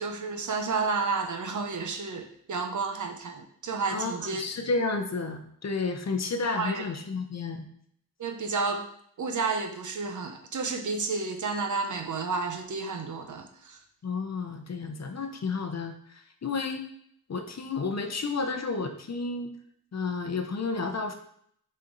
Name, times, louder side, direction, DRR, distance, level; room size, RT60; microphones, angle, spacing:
voice 1, 0.0-4.4 6.6-6.8 8.2-8.9 9.2-13.8, right 4 dB, 55° right, 4 dB, 0.9 m, -31 dB
voice 2, 3.9-7.7 14.0-16.9 17.3-19.6 19.9-21.1, left 4 dB, 45° left, 5 dB, 0.8 m, -31 dB
6.7 x 4.4 x 3.9 m, 0.66 s
wide cardioid pair, 145°, 37 cm